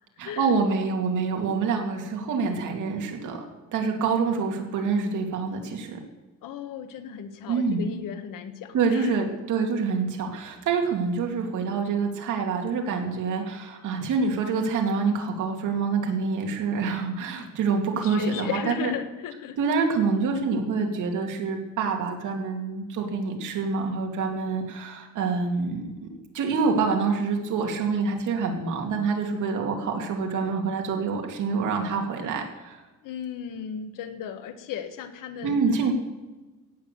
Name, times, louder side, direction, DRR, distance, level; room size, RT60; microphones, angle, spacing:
voice 1, 0.2-3.4 3.7-6.0 7.5-8.0 8.7-18.9 19.6-26.1 26.3-32.8 35.4-35.9, right 5 dB, 70° right, 2 dB, 2.6 m, -26 dB
voice 2, 6.4-9.1 17.9-19.6 33.0-35.6, left 8 dB, 85° left, 9 dB, 1.5 m, -36 dB
16.5 x 8.3 x 6.8 m, 1.2 s
cardioid pair, 145°, 32 cm